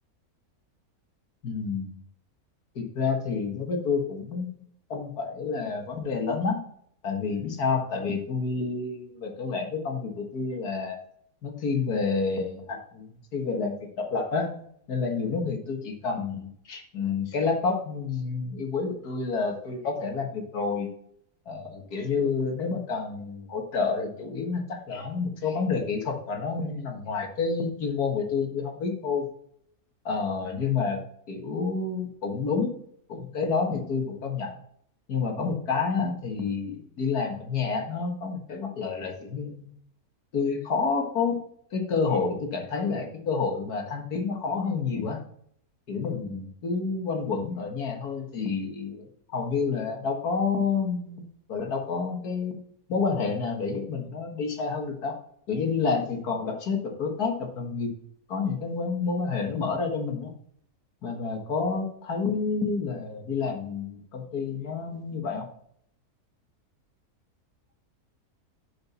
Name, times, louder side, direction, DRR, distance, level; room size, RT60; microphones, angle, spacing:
voice 1, 1.4-2.0 2.8-6.6 7.0-11.0 11.4-14.5 14.9-20.9 21.5-29.3 30.1-31.0 31.3-32.8 33.1-34.6 35.1-39.7 40.3-41.4 41.7-45.2 45.9-49.1 49.3-52.6 52.9-55.2 55.5-58.0 58.3-60.3 61.0-65.5, left 5 dB, 85° left, 2 dB, 2.1 m, -29 dB
6.9 x 6.8 x 4.3 m, 0.65 s
omnidirectional pair, 1.6 m